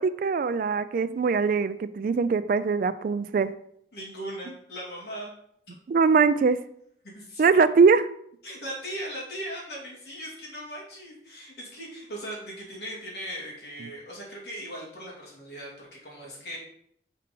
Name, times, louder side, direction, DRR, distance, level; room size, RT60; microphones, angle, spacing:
voice 1, 0.0-3.5 5.9-6.6 7.4-8.1, right 5 dB, 50° right, 13 dB, 0.3 m, -22 dB
voice 2, 3.9-5.3 5.7-5.8 7.1-7.5 8.4-16.6, equal, 65° left, -4 dB, 2.6 m, -38 dB
5.4 x 4.1 x 5.3 m, 0.69 s
head